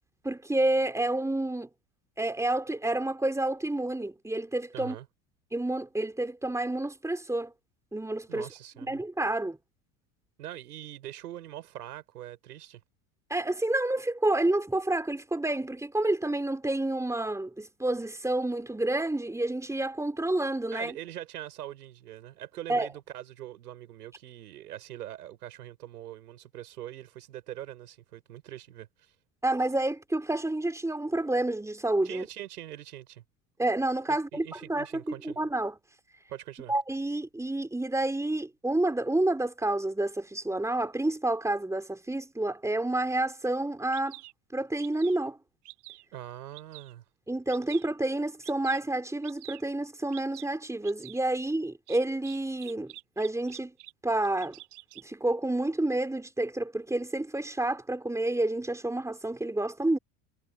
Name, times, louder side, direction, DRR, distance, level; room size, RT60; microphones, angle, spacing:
voice 1, 0.2-1.7 2.2-4.9 5.5-7.5 7.9-8.5 8.9-9.6 13.3-20.9 22.7-22.9 29.4-32.3 33.6-35.7 36.7-44.2 44.5-45.4 47.3-53.7 54.0-54.6 55.0-60.0, right 2 dB, 5° right, 4.2 m, -29 dB
voice 2, 4.7-5.1 8.3-9.0 10.4-12.8 20.7-29.1 32.0-33.2 34.1-35.5 36.3-36.8 46.1-47.0, right 13 dB, 85° right, 8.0 m, -43 dB
Bird vocalization bird call bird song, 43.5-43.6 43.9-44.3 44.8-45.2 45.6-46.0 46.5-46.9 47.5-47.9 48.4-48.8 49.2-49.6 50.1-50.5 50.8-51.2 51.9-53.9 54.2-55.0, right 23 dB, 60° right, 6.8 m, -47 dB
hypercardioid pair, 80°, 45 cm